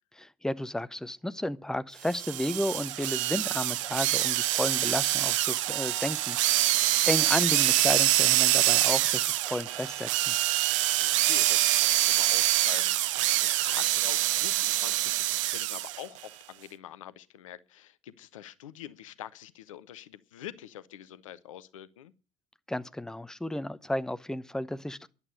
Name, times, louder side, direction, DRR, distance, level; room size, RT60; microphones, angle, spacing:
voice 1, 0.2-10.3 22.7-25.1, left 1 dB, 5° left, 0.9 m, -33 dB
sound 1, 2.1-16.0, right 15 dB, 65° right, 0.7 m, -25 dB
voice 2, 10.9-22.1, left 12 dB, 70° left, 0.8 m, -45 dB
11.0 x 8.4 x 9.5 m
figure-of-eight pair, 60°, 17 cm